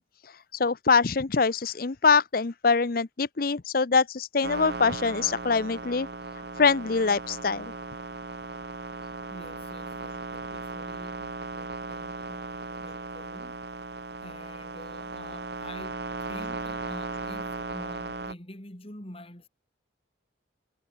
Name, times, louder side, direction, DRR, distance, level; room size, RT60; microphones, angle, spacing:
voice 1, 0.0-6.1 6.6-7.6, left 4 dB, 50° left, 0.7 m, -24 dB
sound 1, 4.4-18.3, right 3 dB, 60° right, 1.6 m, -37 dB
voice 2, 9.3-13.6 14.2-19.5, left 1 dB, 30° left, 3.6 m, -47 dB
head